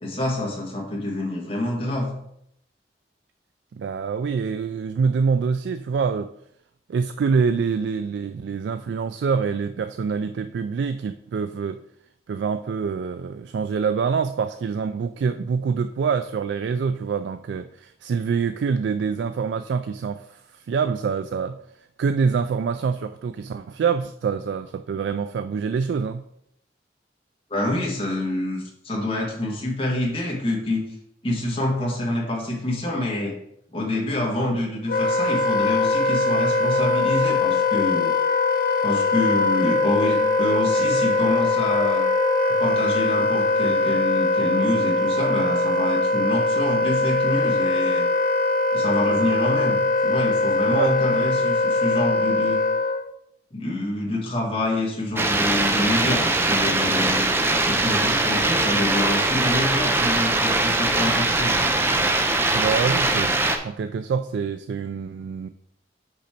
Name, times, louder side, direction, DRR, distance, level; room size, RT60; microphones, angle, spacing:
voice 1, 0.0-2.1 27.5-30.8 31.2-33.3 33.7-38.1 38.8-42.1 42.5-48.1 48.7-52.6 53.5-57.3 57.7-61.6, left 1 dB, 30° left, -3 dB, 1.5 m, -27 dB
voice 2, 3.7-6.3 6.9-11.8 12.3-21.6 22.0-26.2 50.7-50.9 62.5-65.5, right 5 dB, 85° right, 10 dB, 0.3 m, -25 dB
Wind instrument woodwind instrument, 34.9-53.1, left 3 dB, 50° left, 0.4 m, -21 dB
sound 1, 55.2-63.6, right 2 dB, 15° right, 0.5 m, -21 dB
5.6 x 5.1 x 4.3 m, 0.74 s
head